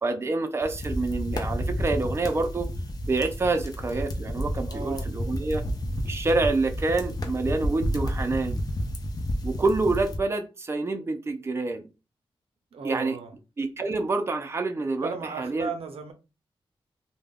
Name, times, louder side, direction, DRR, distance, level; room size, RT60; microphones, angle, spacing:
voice 1, 0.0-2.7 3.1-5.6 6.1-8.7 9.4-11.9 12.8-13.2 13.6-15.7, right 3 dB, 25° right, 0.4 m, -27 dB
sound 1, 0.6-10.2, equal, 40° left, 0.5 m, -31 dB
voice 2, 4.7-5.1 12.7-13.3 15.0-16.1, right 5 dB, 85° right, 0.5 m, -35 dB
2.2 x 2.1 x 3.4 m
wide cardioid pair, 85°, 10 cm